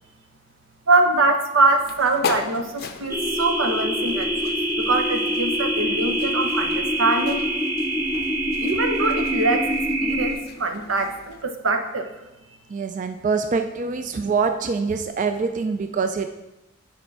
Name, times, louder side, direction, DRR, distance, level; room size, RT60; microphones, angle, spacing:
voice 1, 0.9-4.5 4.9-7.4 8.2-8.3 8.6-12.1, right 2 dB, 85° right, 6 dB, 0.9 m, -23 dB
sound 1, 1.7-11.4, left 6 dB, 50° left, 0.5 m, -37 dB
sound 2, 3.1-10.3, equal, 10° right, 0.8 m, -24 dB
voice 2, 12.7-16.3, right 5 dB, 40° right, 7 dB, 0.4 m, -24 dB
8.7 x 5.3 x 4.6 m, 0.98 s
head